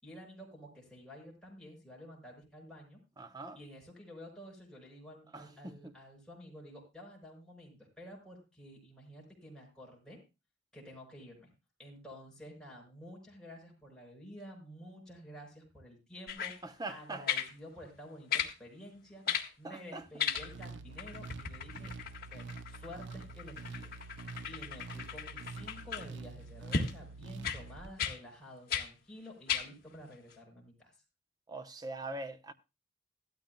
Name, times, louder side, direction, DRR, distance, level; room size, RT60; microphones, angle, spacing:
voice 1, 0.0-3.0 3.5-10.2 10.7-11.5 11.8-19.2 19.6-21.9 22.3-23.9 24.5-30.9, equal, 5° left, 5.8 m, -51 dB
voice 2, 3.2-3.6 5.3-5.9 16.6-17.2 19.3-19.4 19.6-20.0 31.5-32.5, right 2 dB, 20° right, 0.8 m, -42 dB
sound 1, 16.3-16.6 17.3-17.5 18.3-18.5 19.3-19.5 20.2-20.7 21.0-26.1 26.7-26.9 27.4-27.6 28.0-28.2 28.7-28.9 29.5-29.7 30.3-30.4, left 7 dB, 50° left, 1.7 m, -36 dB
sound 2, 20.4-27.9, right 4 dB, 65° right, 0.6 m, -47 dB
16.5 x 13.0 x 2.2 m
head